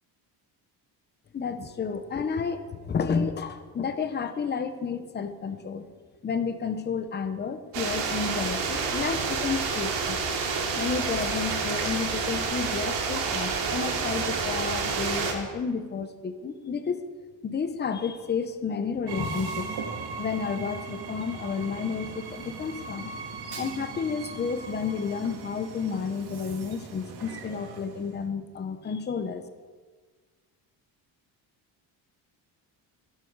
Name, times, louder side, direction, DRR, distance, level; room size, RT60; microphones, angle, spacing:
voice 1, 1.3-5.9 6.2-10.2 10.7-17.1 17.4-19.7 20.2-23.1 23.6-29.5, left 6 dB, 25° left, 9 dB, 0.9 m, -31 dB
sound 1, 7.7-15.3, right 5 dB, 85° right, 2.9 m, -29 dB
Train, 19.1-28.3, right 4 dB, 60° right, 2.2 m, -39 dB
24.5 x 12.5 x 4.7 m, 1.5 s
cardioid pair, 175°, 42 cm